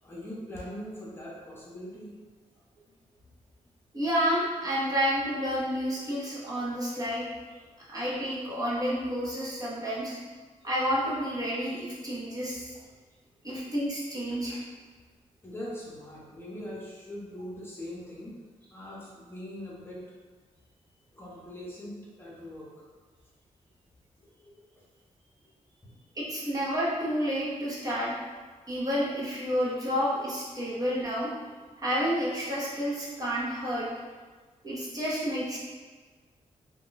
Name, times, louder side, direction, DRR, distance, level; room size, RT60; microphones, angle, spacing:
voice 1, 0.0-2.2 13.4-13.6 14.3-14.6 15.4-18.3 18.7-20.0 21.1-22.8 24.2-24.6 25.8-26.0, left 1 dB, 20° left, -6 dB, 0.8 m, -42 dB
voice 2, 3.9-7.2 7.9-10.2 10.6-12.7 13.4-14.6 26.1-28.1 28.7-31.3 31.8-33.9 34.6-35.6, equal, 30° right, -6 dB, 0.8 m, -30 dB
2.3 x 2.2 x 3.8 m, 1.4 s
cardioid pair, 85°, 13 cm